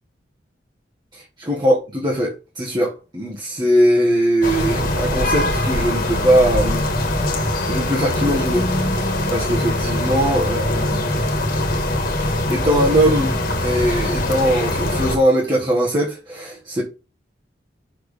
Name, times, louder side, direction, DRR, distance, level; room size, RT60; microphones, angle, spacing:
voice 1, 1.1-6.8 7.6-11.0 12.2-16.8, equal, 25° right, 1.6 m, -20 dB
sound 1, 4.4-15.2, left 1 dB, 50° left, 1.8 m, -22 dB
6.3 x 4.6 x 5.0 m
head